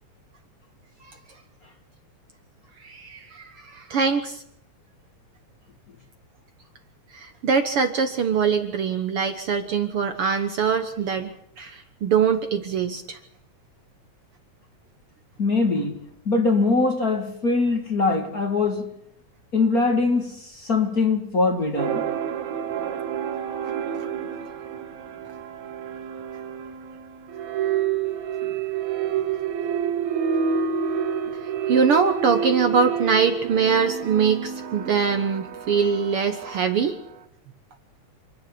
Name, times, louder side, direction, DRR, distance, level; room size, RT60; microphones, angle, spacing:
voice 1, 2.8-4.4 7.1-13.2 24.0-24.1 31.7-37.0, right 6 dB, 55° right, 1.8 m, -23 dB
voice 2, 15.4-19.0 19.5-22.1, left 3 dB, 35° left, 2.0 m, -22 dB
sound 1, 21.8-37.1, right 8 dB, 75° right, 2.7 m, -29 dB
27.5 x 10.5 x 10.0 m
omnidirectional pair, 3.4 m